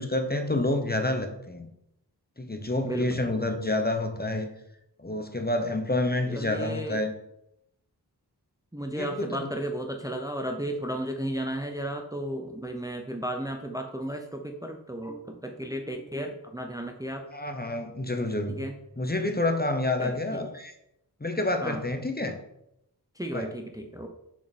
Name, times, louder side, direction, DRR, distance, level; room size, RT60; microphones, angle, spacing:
voice 1, 0.0-1.7 2.4-4.5 5.0-7.1 8.9-9.5 17.3-18.6 19.0-20.7 21.2-22.4 23.3-23.5, left 2 dB, 25° left, 6 dB, 1.0 m, -28 dB
voice 2, 2.8-3.3 6.3-7.0 8.7-17.3 18.5-18.8 20.0-20.4 21.6-21.8 23.1-24.1, right 1 dB, 10° right, 4 dB, 0.8 m, -34 dB
6.6 x 6.2 x 4.2 m, 0.80 s
wide cardioid pair, 55°, 41 cm